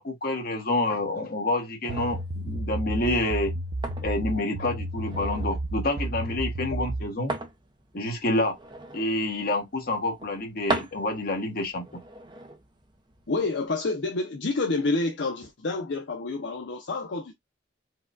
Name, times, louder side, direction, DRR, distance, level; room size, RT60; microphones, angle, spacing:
voice 1, 0.0-3.5 4.0-7.3 7.9-8.6 8.9-11.8, left 2 dB, 50° left, 1.2 m, -28 dB
sound 1, 1.8-13.7, right 2 dB, 25° right, 0.6 m, -39 dB
sound 2, 1.9-7.1, right 1 dB, 65° right, 0.6 m, -32 dB
voice 2, 13.3-17.3, left 3 dB, 65° left, 0.6 m, -28 dB
4.6 x 2.3 x 2.4 m
head